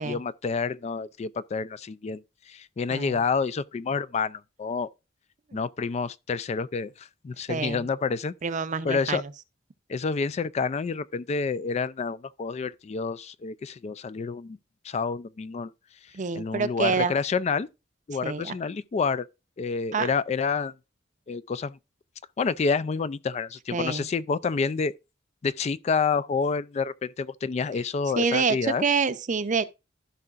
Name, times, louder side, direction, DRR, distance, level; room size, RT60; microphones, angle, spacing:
voice 1, 0.0-2.2 2.5-4.9 5.5-8.3 8.8-9.2 9.9-14.6 14.8-15.7 16.3-17.7 18.1-19.3 19.6-20.7 21.3-21.8 22.4-24.9 25.4-28.8, left 5 dB, 35° left, 0.3 m, -28 dB
voice 2, 7.5-7.9 8.4-9.2 16.1-17.1 18.2-18.5 19.9-20.1 23.7-24.1 28.2-29.6, right 5 dB, 40° right, 0.6 m, -27 dB
14.5 x 5.6 x 2.4 m
head